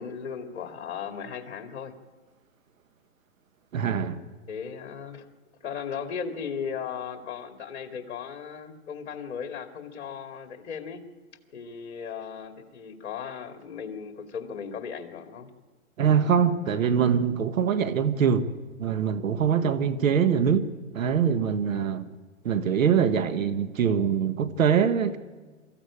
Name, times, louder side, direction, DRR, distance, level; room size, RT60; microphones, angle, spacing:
voice 1, 0.0-1.9 4.5-5.3 5.6-11.0 11.5-15.5 21.7-21.9, left 7 dB, 55° left, 2.5 m, -36 dB
voice 2, 3.7-4.2 16.0-18.5 18.8-20.7 20.9-22.1 22.4-25.2, right 7 dB, 75° right, 1.5 m, -23 dB
25.0 x 14.5 x 8.6 m
hypercardioid pair, 150°, 40 cm